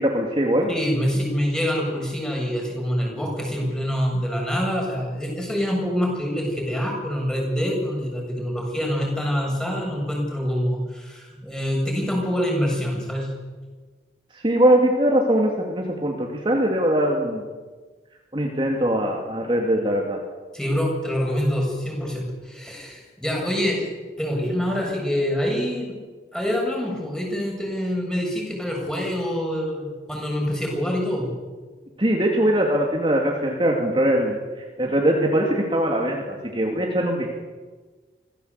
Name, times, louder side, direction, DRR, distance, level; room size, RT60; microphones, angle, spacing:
voice 1, 0.0-0.7 14.3-17.4 18.3-20.2 32.0-34.4 34.8-37.4, right 1 dB, 30° right, 0 dB, 2.8 m, -21 dB
voice 2, 0.7-13.3 20.5-23.9 24.2-26.0 26.3-31.3, equal, 5° left, -1 dB, 7.1 m, -25 dB
25.5 x 17.5 x 8.4 m, 1.4 s
head